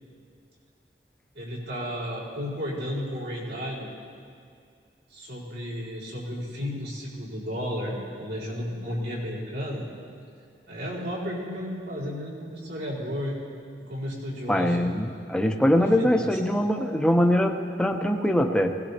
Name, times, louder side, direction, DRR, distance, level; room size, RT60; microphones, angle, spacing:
voice 1, 1.3-3.9 5.1-9.8 10.7-13.4 13.9-14.9 16.0-16.4, equal, 80° right, -6 dB, 4.5 m, -33 dB
voice 2, 14.5-18.7, equal, 5° left, 3 dB, 0.7 m, -22 dB
20.5 x 18.0 x 2.9 m, 2.4 s
head